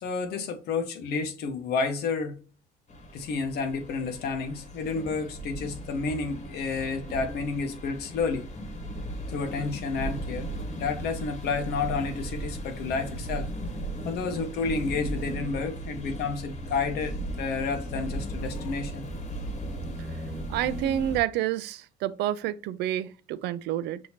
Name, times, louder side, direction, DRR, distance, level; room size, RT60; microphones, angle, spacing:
voice 1, 0.0-2.4 3.1-8.5 9.3-13.5 14.0-19.1, left 4 dB, 70° left, 1.0 m, -30 dB
sound 1, 2.9-21.2, right 1 dB, 45° left, 1.3 m, -36 dB
voice 2, 20.5-24.0, right 12 dB, 80° right, 0.4 m, -29 dB
6.2 x 2.8 x 2.9 m
cardioid pair, 110°, 17 cm